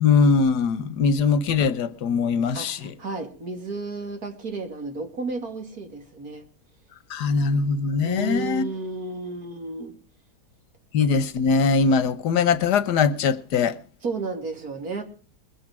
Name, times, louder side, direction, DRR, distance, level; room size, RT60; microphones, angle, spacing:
voice 1, 0.0-2.9 7.1-8.6 10.9-13.8, left 5 dB, 85° left, 1.6 m, -21 dB
voice 2, 2.5-6.5 8.0-9.9 14.0-15.0, right 3 dB, 65° right, 3.1 m, -32 dB
21.5 x 8.6 x 6.0 m
omnidirectional pair, 1.7 m